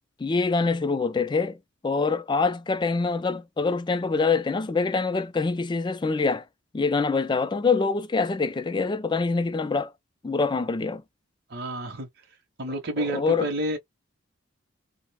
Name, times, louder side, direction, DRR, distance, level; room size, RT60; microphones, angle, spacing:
voice 1, 0.2-1.6 1.8-6.5 6.7-9.9 10.2-11.0 13.0-13.5, left 4 dB, 25° left, 0.3 m, -25 dB
voice 2, 11.5-12.1 12.6-13.8, right 1 dB, 55° right, 0.7 m, -30 dB
2.4 x 2.0 x 3.3 m
head